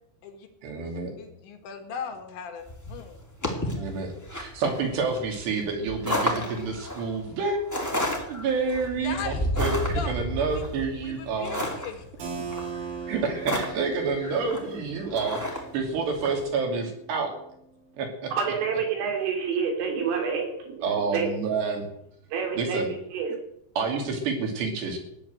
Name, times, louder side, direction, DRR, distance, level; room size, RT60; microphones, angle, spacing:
voice 1, 0.6-1.1 3.7-7.6 8.3-11.6 13.1-17.3 18.0-18.3 20.8-21.9 22.5-22.9 23.8-25.0, right 4 dB, 65° right, 3 dB, 4.8 m, -29 dB
voice 2, 1.2-3.9 9.0-9.7 9.9-10.1 10.6-10.7 11.0-12.2, left 6 dB, 70° left, 5 dB, 4.0 m, -38 dB
sound 1, 2.7-16.4, equal, 5° left, 1.5 m, -32 dB
Keyboard (musical), 12.2-17.7, right 5 dB, 45° right, 4.0 m, -40 dB
voice 3, 18.3-21.3 22.3-23.4, right 6 dB, 85° right, 2 dB, 5.9 m, -28 dB
15.5 x 10.5 x 7.9 m, 0.77 s
omnidirectional pair, 5.5 m